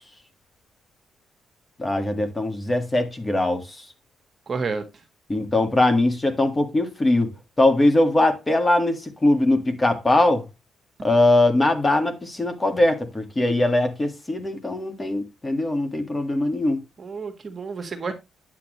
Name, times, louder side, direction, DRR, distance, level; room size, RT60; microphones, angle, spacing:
voice 1, 1.8-3.7 5.3-7.3 7.6-10.4 11.0-16.8, left 2 dB, 20° left, 1.8 m, -21 dB
voice 2, 4.5-4.8 17.0-18.1, right 4 dB, 40° right, 1.6 m, -30 dB
8.7 x 8.2 x 3.1 m
cardioid pair, 90°, 0 cm